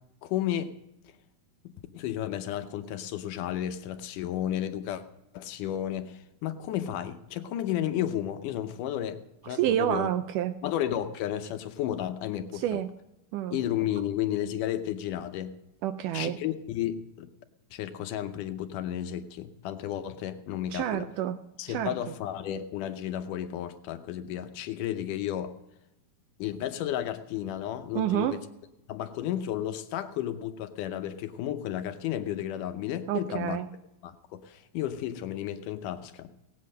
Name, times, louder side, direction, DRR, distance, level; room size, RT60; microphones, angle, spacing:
voice 1, 0.2-0.7 1.9-5.0 5.3-10.1 10.6-12.8 13.5-15.5 16.1-17.3 17.7-21.1 21.6-25.5 26.4-28.4 28.9-33.6 34.0-36.3, left 11 dB, 75° left, 9 dB, 2.1 m, -33 dB
voice 2, 9.5-10.5 12.5-12.9 13.3-13.6 15.8-16.4 20.7-21.4 21.7-22.0 28.0-28.4 33.1-33.7, right 12 dB, 80° right, 10 dB, 1.9 m, -28 dB
18.0 x 8.4 x 6.5 m, 0.92 s
omnidirectional pair, 4.1 m